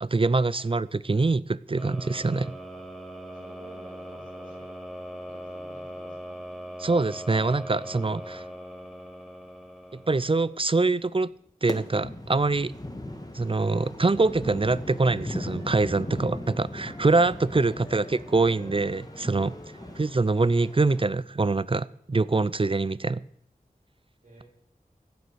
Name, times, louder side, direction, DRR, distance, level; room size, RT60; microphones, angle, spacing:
voice 1, 0.0-2.5 6.8-8.4 10.1-11.3 11.6-12.7 13.3-19.6 20.0-23.2, right 3 dB, 35° right, 19 dB, 0.5 m, -24 dB
sound 1, 1.8-10.7, equal, ahead, 2.8 m, -41 dB
voice 2, 3.3-4.7 5.2-6.4 10.3-10.4 17.6-18.0 19.7-20.0 24.2-24.4, right 2 dB, 60° right, -5 dB, 7.5 m, -52 dB
sound 2, 11.7-21.0, left 1 dB, 25° left, 1.9 m, -38 dB
Wind instrument woodwind instrument, 13.0-21.0, left 3 dB, 50° left, 2.2 m, -52 dB
16.0 x 9.1 x 6.9 m, 0.72 s
wide cardioid pair, 50°, 15 cm